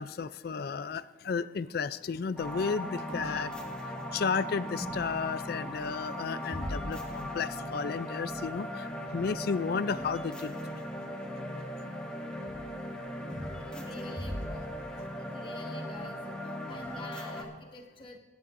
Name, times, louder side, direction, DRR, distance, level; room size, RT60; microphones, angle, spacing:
voice 1, 0.0-3.5 4.1-10.6, left 5 dB, 50° left, 15 dB, 0.3 m, -33 dB
sound 1, 2.4-17.4, equal, 5° left, 1.3 m, -38 dB
voice 2, 13.6-18.2, left 2 dB, 25° left, 1 dB, 1.5 m, -48 dB
23.5 x 10.5 x 2.6 m, 1.3 s
head